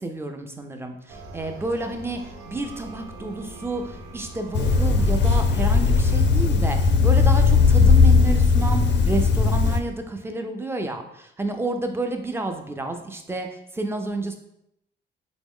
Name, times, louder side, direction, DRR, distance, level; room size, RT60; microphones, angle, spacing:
voice 1, 0.0-14.4, right 2 dB, 10° right, 5 dB, 0.5 m, -30 dB
sound 1, 1.1-6.2, right 1 dB, 90° right, 0.7 m, -41 dB
ambience toilet fluch pipe, 4.5-9.8, left 4 dB, 65° left, 0.5 m, -18 dB
4.2 x 2.0 x 3.6 m, 0.80 s
cardioid pair, 90°, 20 cm